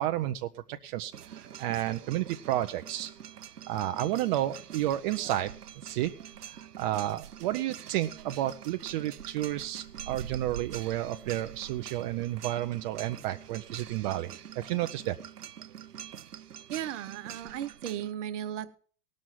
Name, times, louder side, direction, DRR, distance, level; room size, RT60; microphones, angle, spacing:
voice 1, 0.0-3.1 3.7-6.1 6.4-15.2, right 14 dB, 35° right, 8 dB, 0.6 m, -31 dB
sound 1, 1.1-18.1, right 9 dB, 85° right, 0.6 m, -45 dB
voice 2, 16.7-18.7, right 10 dB, 50° right, 12 dB, 1.2 m, -36 dB
19.0 x 6.4 x 5.9 m, 0.44 s
figure-of-eight pair, 95°, 45 cm